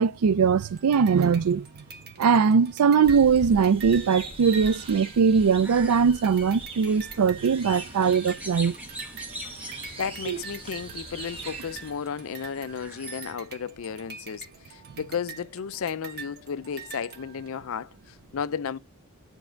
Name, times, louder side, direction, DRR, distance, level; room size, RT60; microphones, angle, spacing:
voice 1, 0.0-1.7 2.2-8.7 10.3-10.4, right 6 dB, 90° right, 0.4 m, -21 dB
sound 1, 0.6-5.8 6.2-17.8, right 6 dB, 45° right, 1.3 m, -46 dB
sound 2, 3.0-11.9, right 2 dB, 25° right, 1.3 m, -41 dB
sound 3, 5.4-13.3, right 1 dB, 5° right, 1.5 m, -44 dB
voice 2, 10.0-18.8, left 6 dB, 65° left, 0.5 m, -33 dB
10.0 x 3.4 x 5.0 m
head